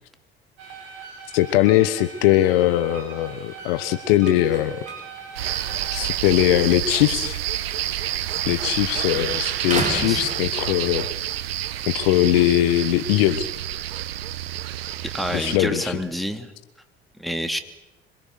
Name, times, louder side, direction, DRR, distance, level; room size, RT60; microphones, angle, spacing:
sound 1, 0.6-6.1, right 5 dB, 55° right, 6.7 m, -40 dB
voice 1, 1.3-4.8 5.9-7.4 8.5-11.1 11.8-13.5 15.3-16.0, left 14 dB, 65° left, 12 dB, 1.2 m, -20 dB
sound 2, 3.2-8.8 9.1-11.1 11.6-14.7, right 2 dB, 25° right, 6.8 m, -37 dB
sound 3, 5.3-15.6, right 12 dB, 75° right, 1.1 m, -28 dB
voice 2, 15.0-16.5 17.2-17.6, equal, ahead, 7 dB, 2.7 m, -28 dB
26.0 x 23.0 x 6.8 m, 0.91 s
figure-of-eight pair, 55°, 31 cm